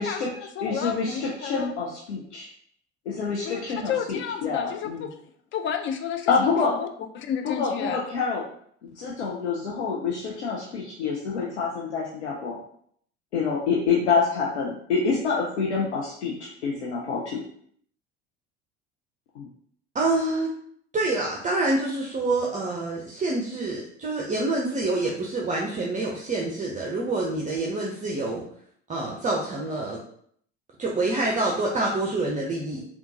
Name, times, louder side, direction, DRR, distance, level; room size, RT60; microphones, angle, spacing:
voice 1, 0.0-1.7 3.4-5.2 5.5-6.9 7.1-8.0, left 8 dB, 35° left, 8 dB, 0.5 m, -31 dB
voice 2, 0.6-2.5 3.1-5.1 6.3-6.7 7.4-8.4 9.0-12.6 13.3-17.4 19.4-19.5, left 5 dB, 80° left, -4 dB, 0.7 m, -27 dB
voice 3, 19.9-20.5 20.9-28.4 28.9-30.0 30.8-32.8, right 2 dB, 20° right, -2 dB, 0.7 m, -27 dB
3.6 x 2.4 x 2.8 m, 0.63 s
figure-of-eight pair, 65°, 34 cm